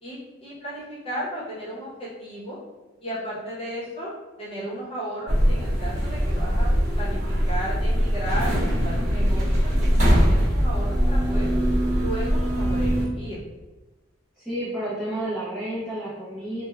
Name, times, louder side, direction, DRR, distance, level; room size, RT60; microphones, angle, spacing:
voice 1, 0.0-2.6 3.0-4.1 4.4-7.2 7.5-11.5 12.0-13.4, right 1 dB, 30° left, -7 dB, 0.9 m, -34 dB
sound 1, 5.3-13.1, equal, 40° right, 1.0 m, -22 dB
voice 2, 14.4-16.6, right 1 dB, ahead, -11 dB, 0.7 m, -30 dB
3.4 x 2.1 x 2.3 m, 1.1 s
head